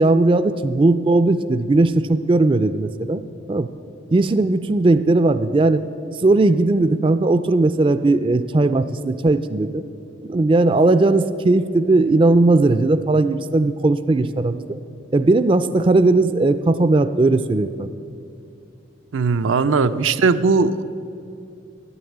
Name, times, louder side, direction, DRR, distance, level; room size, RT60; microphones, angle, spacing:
voice 1, 0.0-3.2 3.5-3.7 4.1-5.8 6.1-9.8 10.2-14.8 15.1-17.9, right 2 dB, 25° right, 12 dB, 0.3 m, -17 dB
voice 2, 19.1-20.8, right 4 dB, 85° right, 11 dB, 0.5 m, -18 dB
11.0 x 9.3 x 8.5 m, 2.6 s
head